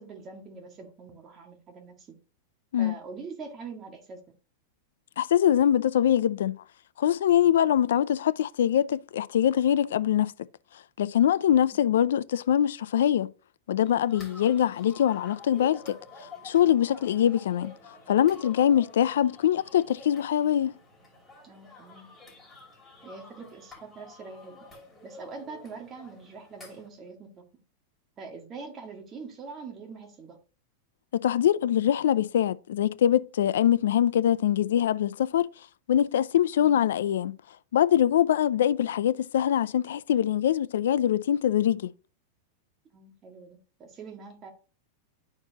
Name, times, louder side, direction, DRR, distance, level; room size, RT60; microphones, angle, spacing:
voice 1, 0.0-2.1 2.8-4.2 21.4-22.1 23.0-24.5 25.0-27.4 28.2-30.4 36.6-36.9 42.9-44.5, right 4 dB, 25° right, 2.0 m, -43 dB
voice 2, 5.2-6.6 7.0-10.3 11.0-13.3 13.7-16.0 16.4-17.7 18.1-20.7 31.1-35.5 35.9-37.4 37.7-41.9, left 10 dB, 85° left, 0.4 m, -23 dB
sound 1, 13.8-26.9, left 3 dB, 10° left, 2.9 m, -50 dB
11.5 x 4.5 x 2.9 m
supercardioid pair, 150°, 0 cm